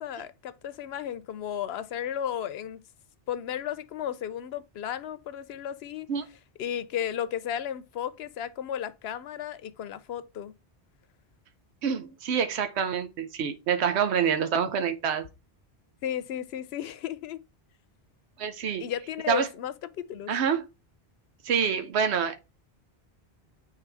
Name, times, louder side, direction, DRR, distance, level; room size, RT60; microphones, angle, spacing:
voice 1, 0.0-2.8 3.3-6.1 6.6-10.5 16.0-17.4 18.8-20.3, left 10 dB, 75° left, 0.8 m, -34 dB
voice 2, 11.8-15.3 18.4-18.8 19.3-19.5 20.3-20.7 21.4-22.4, right 7 dB, 85° right, 1.0 m, -26 dB
8.3 x 3.5 x 3.4 m
omnidirectional pair, 1.1 m